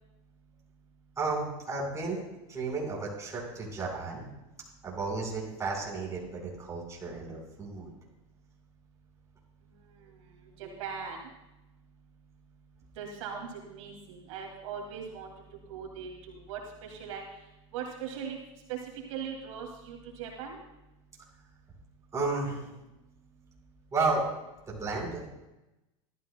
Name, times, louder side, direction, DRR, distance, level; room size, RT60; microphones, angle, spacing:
voice 1, 1.2-2.2 2.5-4.3 4.8-7.9 22.1-22.7 23.9-24.2 24.7-25.2, right 3 dB, 20° right, -3 dB, 4.6 m, -32 dB
voice 2, 9.8-11.3 13.0-15.3 15.7-17.2 17.7-18.4 18.7-20.6, right 7 dB, 75° right, 0 dB, 2.4 m, -40 dB
18.5 x 13.0 x 2.2 m, 0.97 s
supercardioid pair, 125°, 16 cm